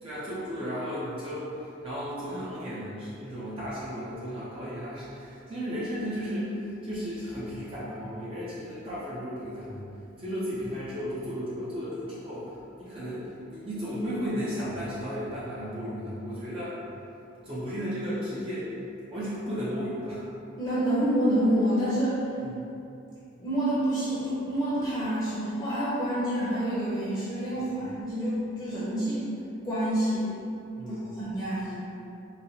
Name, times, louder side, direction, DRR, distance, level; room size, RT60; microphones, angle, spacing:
voice 1, 0.0-1.5 1.8-6.6 6.8-9.8 10.2-12.5 12.8-16.8 17.4-18.7 19.1-20.2 22.4-22.5 27.6-27.8 30.8-31.0, equal, 25° right, -10 dB, 0.6 m, -34 dB
voice 2, 20.6-22.2 23.4-29.3 29.6-30.3 30.9-31.7, right 1 dB, 20° left, -10 dB, 0.8 m, -27 dB
4.1 x 2.1 x 3.9 m, 2.7 s
head